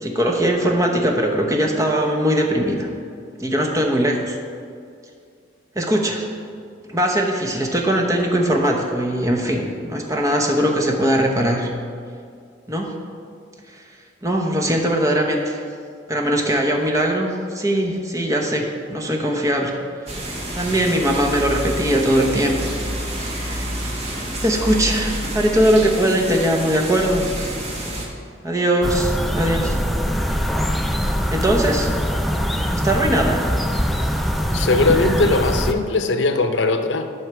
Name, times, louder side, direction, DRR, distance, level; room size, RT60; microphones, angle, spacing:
voice 1, 0.0-2.9 3.4-4.4 5.8-6.2 6.9-11.7 12.7-12.9 13.7-13.8 14.2-15.6 16.1-19.7 20.5-22.6 23.2-23.7 24.4-27.5 28.4-29.8 31.3-31.9 32.7-33.6, right 1 dB, 20° right, 1 dB, 0.9 m, -20 dB
sound 1, 20.1-28.0, right 1 dB, 35° right, 1.3 m, -28 dB
sound 2, 28.8-35.7, equal, ahead, 0.4 m, -22 dB
voice 2, 34.5-37.1, left 3 dB, 85° left, 8 dB, 0.6 m, -19 dB
11.0 x 5.5 x 4.7 m, 2.3 s
head